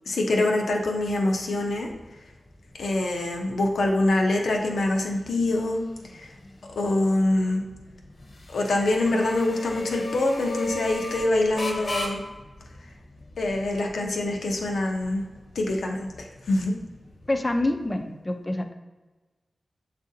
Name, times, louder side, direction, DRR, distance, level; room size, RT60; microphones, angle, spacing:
voice 1, 0.1-1.9 2.8-5.8 6.1-6.3 6.8-7.6 8.5-12.2 13.4-15.2 15.6-16.7, left 2 dB, 90° left, 1 dB, 0.6 m, -25 dB
sound 1, 0.8-18.0, left 2 dB, 55° left, 0.8 m, -39 dB
voice 2, 17.3-18.7, left 1 dB, 25° left, 5 dB, 0.4 m, -26 dB
7.1 x 2.5 x 2.7 m, 1.2 s
wide cardioid pair, 80°, 0 cm